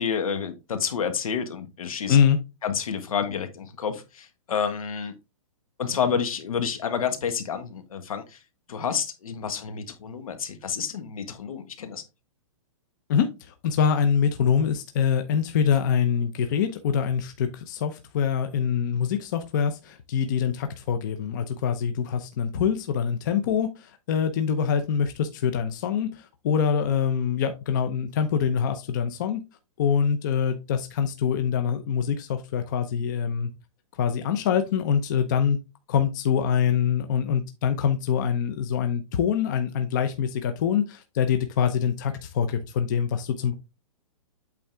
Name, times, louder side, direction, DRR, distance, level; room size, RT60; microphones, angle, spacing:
voice 1, 0.0-2.2 2.6-5.1 5.8-8.4 8.7-12.0, left 7 dB, 80° left, 1.5 m, -29 dB
voice 2, 13.1-29.4 29.8-33.5 34.0-35.6 35.9-43.5, left 7 dB, 35° left, 0.7 m, -24 dB
8.4 x 3.7 x 3.4 m
hypercardioid pair, 170°, 18 cm